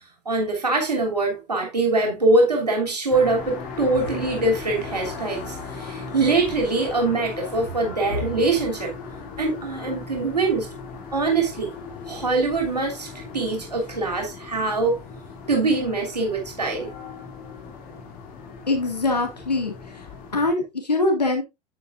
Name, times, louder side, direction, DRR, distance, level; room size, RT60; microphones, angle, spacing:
voice 1, 0.2-8.9 9.4-10.7 11.1-11.7 12.1-15.0 15.5-16.9, right 3 dB, 85° right, 3.0 m, -23 dB
sound 1, 3.1-20.5, left 5 dB, 45° left, 2.9 m, -38 dB
voice 2, 18.7-20.1 20.3-21.4, left 2 dB, 85° left, 2.1 m, -23 dB
9.7 x 8.5 x 2.5 m
figure-of-eight pair, 80°, 20 cm